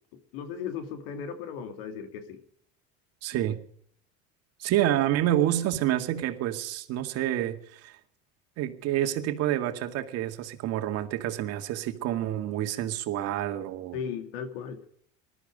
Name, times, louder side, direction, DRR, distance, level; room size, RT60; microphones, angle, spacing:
voice 1, 0.3-2.4 13.9-14.8, left 7 dB, 80° left, 2.8 m, -36 dB
voice 2, 3.2-3.6 4.6-8.0 8.6-14.0, right 12 dB, 55° right, 2.1 m, -28 dB
20.0 x 13.0 x 5.1 m
supercardioid pair, 110°, 29 cm